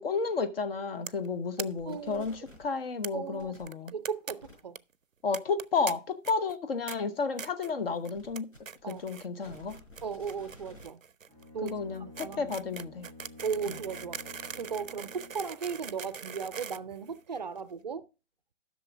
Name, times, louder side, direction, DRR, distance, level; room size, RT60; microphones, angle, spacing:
voice 1, 0.0-3.9 5.2-8.5 8.9-9.8 11.6-13.1 13.7-13.8, left 4 dB, 45° left, 1.0 m, -32 dB
sound 1, 1.1-1.3 1.6-1.7 1.9-2.0 2.2-2.3 3.0-3.1 3.7-4.3 4.6-4.8 5.3-5.9 6.2-6.6 6.9-7.0 7.4-7.7 8.1-8.4 8.7-9.3 9.5-17.6, right 6 dB, 90° right, 0.6 m, -41 dB
voice 2, 1.6-2.3 3.1-3.6 3.9-4.8 8.8-9.0 10.0-11.0 11.5-11.8 12.2-12.5 13.4-14.2 14.5-18.1, right 6 dB, 35° right, 0.5 m, -36 dB
sound 2, 1.7-2.7 3.4-3.6 4.4-4.5 8.1-10.9, left 1 dB, 80° left, 4.6 m, -52 dB
Bowed string instrument, 11.3-15.5, left 2 dB, 10° left, 1.8 m, -50 dB
11.5 x 6.3 x 3.5 m
figure-of-eight pair, 135°, 38 cm